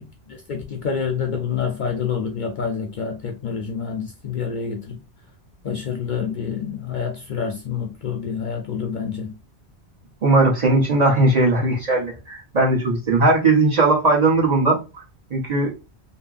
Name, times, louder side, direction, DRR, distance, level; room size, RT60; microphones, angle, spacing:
voice 1, 0.3-5.0 5.6-9.4, left 6 dB, 55° left, 0.6 m, -27 dB
voice 2, 10.2-15.0 15.3-15.7, right 2 dB, 40° right, 0.9 m, -18 dB
2.8 x 2.7 x 2.4 m
omnidirectional pair, 1.1 m